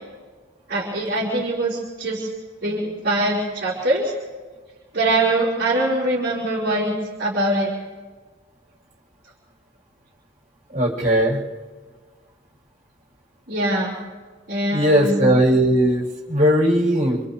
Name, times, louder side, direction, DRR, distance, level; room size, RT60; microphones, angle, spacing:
voice 1, 0.7-2.3 2.6-4.1 4.9-6.9 7.2-7.7 13.5-13.9 14.5-15.3, right 1 dB, 55° right, -6 dB, 4.9 m, -22 dB
voice 2, 10.7-11.4 14.7-17.2, equal, 40° right, -5 dB, 7.9 m, -18 dB
29.0 x 27.5 x 3.3 m, 1.4 s
head